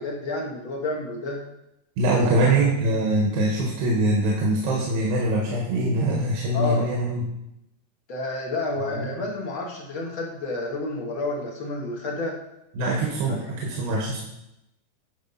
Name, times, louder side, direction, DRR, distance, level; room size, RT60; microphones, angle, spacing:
voice 1, 0.0-1.4 2.1-2.4 6.5-6.9 8.1-12.3 13.3-13.5, left 2 dB, 70° left, -2 dB, 1.2 m, -30 dB
voice 2, 2.0-7.3 8.9-9.1 12.7-14.2, right 1 dB, 80° right, -2 dB, 3.2 m, -23 dB
10.0 x 5.0 x 5.5 m, 0.86 s
omnidirectional pair, 4.2 m